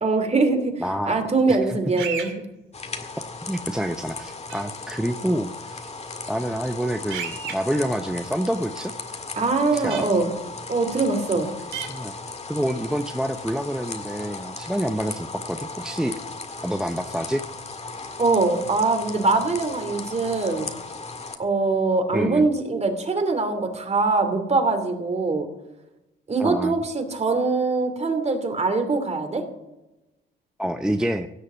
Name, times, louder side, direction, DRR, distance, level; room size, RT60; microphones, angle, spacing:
voice 1, 0.0-0.7 1.0-2.4 9.4-10.3 10.7-11.5 18.2-20.7 21.4-25.5 26.3-29.4, right 3 dB, 35° right, 7 dB, 2.7 m, -22 dB
voice 2, 0.8-1.8 3.4-5.9 6.3-8.9 9.7-10.1 11.9-12.1 12.5-16.2 16.6-17.4 22.1-22.5 26.4-26.8 30.6-31.3, equal, 5° right, 7 dB, 0.7 m, -27 dB
sound 1, 2.0-2.3 4.5-4.6 7.1-7.5 9.9-10.0 11.7-11.9, right 8 dB, 85° right, 2.7 m, -31 dB
sound 2, 2.7-21.4, left 3 dB, 35° left, 1.8 m, -36 dB
16.5 x 6.7 x 8.0 m, 0.98 s
cardioid pair, 90°, 20 cm